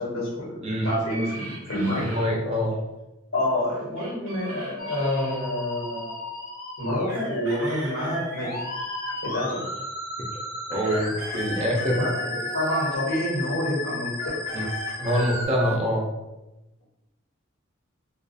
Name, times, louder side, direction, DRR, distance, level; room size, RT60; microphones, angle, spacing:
voice 1, 0.0-2.2 3.3-6.2 6.8-8.6 9.2-9.6 10.7-11.1 11.9-14.1, left 1 dB, 80° left, -6 dB, 1.2 m, -28 dB
sound 1, 0.8-2.3 4.0-5.4 7.1-9.8 10.7-13.0 14.1-15.8, right 3 dB, 90° right, 0.5 m, -38 dB
voice 2, 2.0-2.7 10.7-12.0 14.5-14.6 15.0-16.0, equal, 30° right, -1 dB, 0.4 m, -25 dB
Musical instrument, 4.8-15.5, left 3 dB, 45° left, 0.4 m, -34 dB
2.3 x 2.3 x 2.5 m, 0.99 s
head